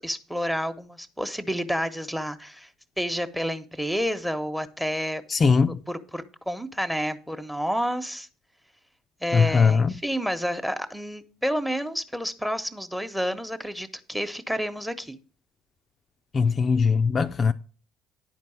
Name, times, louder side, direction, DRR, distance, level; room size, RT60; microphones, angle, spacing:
voice 1, 0.0-2.7 3.0-5.2 5.7-8.3 9.2-15.2, equal, 5° right, 1.1 m, -30 dB
voice 2, 5.3-5.8 9.3-9.9 16.3-17.5, left 5 dB, 35° left, 0.5 m, -20 dB
10.5 x 4.5 x 7.1 m
hypercardioid pair, 65°, 0 cm